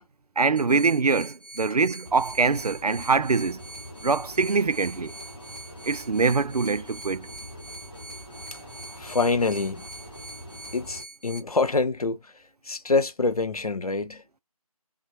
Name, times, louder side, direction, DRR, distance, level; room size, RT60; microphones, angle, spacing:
voice 1, 0.4-3.6 4.0-5.1 5.8-7.3, right 4 dB, 80° right, 0.4 m, -23 dB
sound 1, 0.6-11.4, right 2 dB, 30° right, 1.7 m, -44 dB
sound 2, 2.0-11.0, equal, ahead, 0.9 m, -44 dB
voice 2, 9.0-9.8 10.7-12.3 12.6-14.2, left 3 dB, 75° left, 0.6 m, -25 dB
3.6 x 2.2 x 2.6 m
figure-of-eight pair, 165°, 19 cm